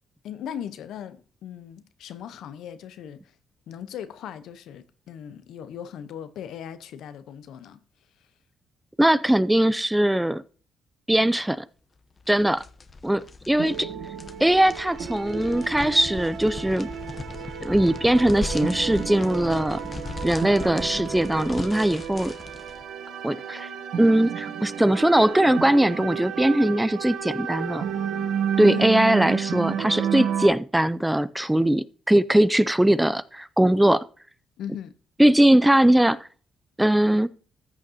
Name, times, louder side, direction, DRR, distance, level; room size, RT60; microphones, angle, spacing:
voice 1, 0.2-3.3 3.7-7.8 28.6-29.0 34.6-35.0, left 9 dB, 80° left, 0.9 m, -38 dB
voice 2, 9.0-10.4 11.1-11.6 12.3-12.6 13.0-13.9 14.4-16.9 17.6-19.8 20.2-22.3 23.2-23.7 24.0-27.8 28.6-34.1 35.2-36.3 36.8-37.3, right 1 dB, 5° right, 0.5 m, -20 dB
sound 1, 12.2-22.8, left 3 dB, 30° left, 0.9 m, -38 dB
sound 2, 13.6-30.5, right 8 dB, 70° right, 1.0 m, -31 dB
14.0 x 6.5 x 2.8 m
cardioid pair, 90°, 0 cm